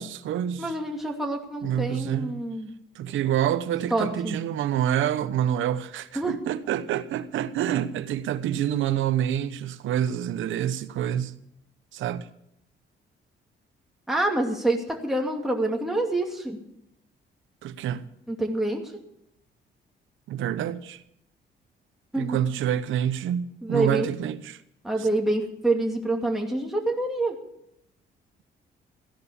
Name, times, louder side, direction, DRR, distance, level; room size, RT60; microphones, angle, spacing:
voice 1, 0.0-0.8 1.6-2.4 2.9-11.3 11.9-12.3 17.6-18.1 20.3-21.0 22.1-24.6 25.0-25.1, right 10 dB, 80° right, 1.0 m, -27 dB
voice 2, 0.6-2.7 3.9-4.4 6.2-6.4 14.1-16.6 18.3-18.8 22.1-22.4 23.6-24.1 24.8-27.3, right 2 dB, ahead, 2.5 m, -26 dB
15.5 x 11.0 x 7.0 m
cardioid pair, 90°, 20 cm